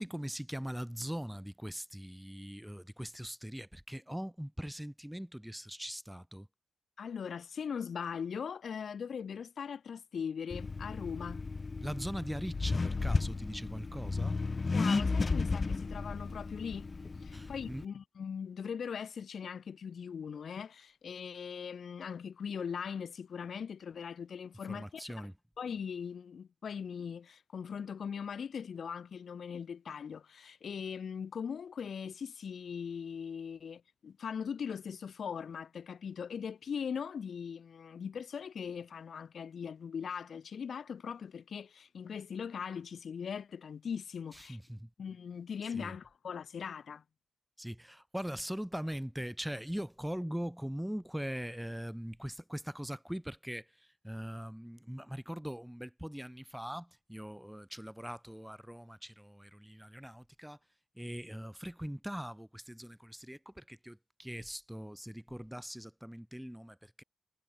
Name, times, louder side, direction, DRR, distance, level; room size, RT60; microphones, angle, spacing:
voice 1, 0.0-6.5 11.8-14.4 17.3-17.9 24.7-25.3 44.3-44.9 45.7-45.9 47.6-60.6 60.9-67.0, equal, ahead, 6.6 m, -41 dB
voice 2, 7.0-11.4 14.7-16.9 17.2-25.1 25.6-44.6 45.0-47.0, left 7 dB, 50° left, 4.0 m, -40 dB
Accelerating revving vroom, 10.5-17.8, left 4 dB, 25° left, 2.4 m, -34 dB
wide cardioid pair, 180°, 0 cm